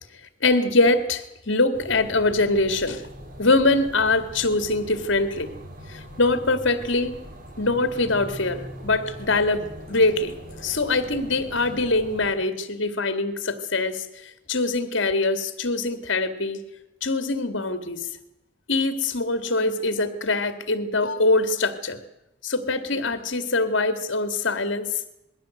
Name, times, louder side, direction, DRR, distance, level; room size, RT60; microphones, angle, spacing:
voice 1, 0.4-3.0 3.4-5.5 5.9-7.2 7.6-10.3 10.6-16.6 17.0-18.1 18.7-22.0 22.4-25.0, left 2 dB, 65° left, 10 dB, 2.1 m, -23 dB
sound 1, 1.7-12.3, equal, 40° right, 2.6 m, -41 dB
21.0 x 16.5 x 7.8 m, 0.91 s
head